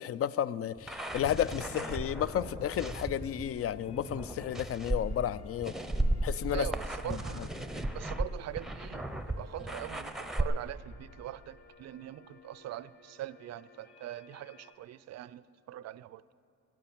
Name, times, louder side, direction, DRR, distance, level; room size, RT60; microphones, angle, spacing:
voice 1, 0.0-5.8 6.2-6.7 7.1-7.2, left 10 dB, 50° left, 0.4 m, -32 dB
sound 1, 0.8-10.4, right 1 dB, ahead, 0.7 m, -35 dB
sound 2, 2.3-14.7, left 4 dB, 70° left, 1.3 m, -58 dB
voice 2, 6.5-7.5 7.9-16.2, right 13 dB, 60° right, 0.4 m, -42 dB
16.0 x 8.6 x 8.7 m
cardioid pair, 90°, 30 cm